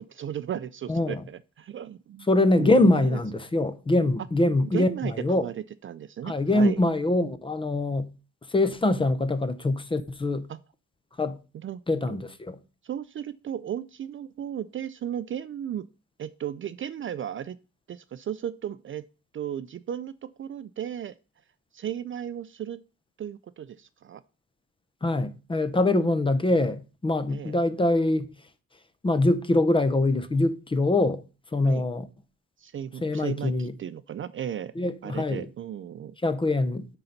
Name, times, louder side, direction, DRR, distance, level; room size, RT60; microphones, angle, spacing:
voice 1, 0.0-2.3 2.6-3.2 4.7-6.8 10.5-10.6 11.5-12.2 12.8-15.9 16.2-17.6 17.9-19.0 19.3-21.2 21.7-22.8 23.2-24.2 27.3-27.6 31.6-31.9 32.6-34.7 35.0-36.2, right 9 dB, 40° right, 0.4 m, -35 dB
voice 2, 0.9-1.2 2.3-5.5 6.2-8.1 8.5-10.5 11.2-11.4 11.9-12.6 25.0-28.3 29.0-31.2 31.5-32.1 33.0-33.7 34.8-35.5 36.2-36.9, left 2 dB, 15° left, 0.6 m, -24 dB
9.2 x 4.0 x 5.7 m
cardioid pair, 155°, 31 cm